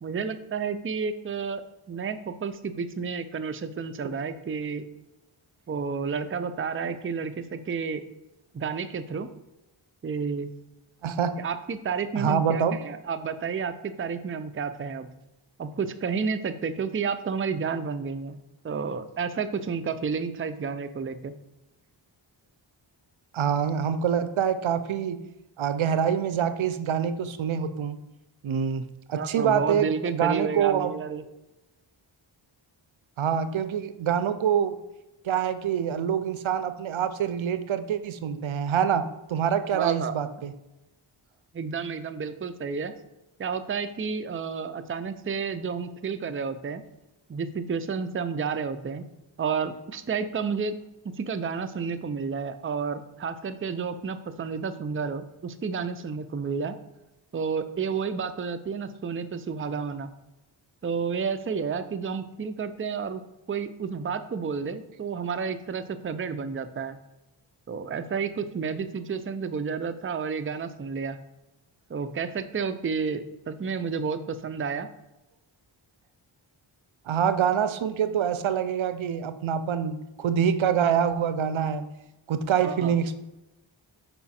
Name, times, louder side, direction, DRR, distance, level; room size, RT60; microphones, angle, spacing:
voice 1, 0.0-4.9 5.7-8.0 8.5-9.3 10.0-10.5 11.4-15.1 15.6-18.4 18.6-21.3 29.2-31.2 39.7-40.1 41.5-42.9 43.4-46.8 47.3-49.0 49.4-50.7 51.0-56.8 57.3-60.1 60.8-63.2 63.5-67.0 67.7-71.2 71.9-74.9 82.6-82.9, right 5 dB, 25° right, 10 dB, 0.5 m, -31 dB
voice 2, 11.0-11.3 12.2-12.8 23.3-25.2 25.6-28.0 28.4-30.9 33.2-34.8 35.2-40.5 77.1-81.8 82.3-83.2, right 8 dB, 75° right, 12 dB, 0.6 m, -26 dB
5.6 x 4.8 x 4.2 m, 1.0 s
cardioid pair, 45°, 48 cm